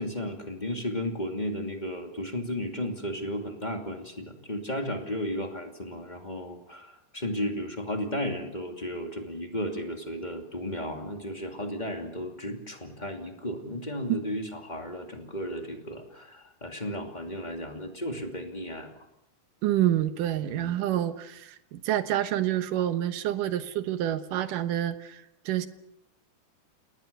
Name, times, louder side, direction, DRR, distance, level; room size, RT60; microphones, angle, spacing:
voice 1, 0.0-19.1 20.5-20.8, equal, 15° left, 3 dB, 2.4 m, -34 dB
voice 2, 19.6-25.2 25.5-25.7, right 12 dB, 85° right, 11 dB, 2.8 m, -28 dB
30.0 x 19.5 x 6.9 m, 0.83 s
omnidirectional pair, 3.7 m